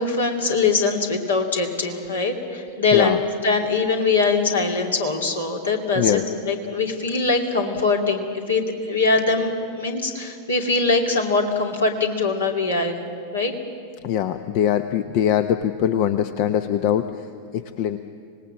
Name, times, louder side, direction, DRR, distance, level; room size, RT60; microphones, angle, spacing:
voice 1, 0.0-3.2 3.4-13.1 13.3-13.5, left 3 dB, 70° left, 2 dB, 2.6 m, -22 dB
voice 2, 14.0-18.0, left 10 dB, 45° left, 10 dB, 0.8 m, -22 dB
26.0 x 19.0 x 7.6 m, 2.3 s
figure-of-eight pair, 90°, 0 cm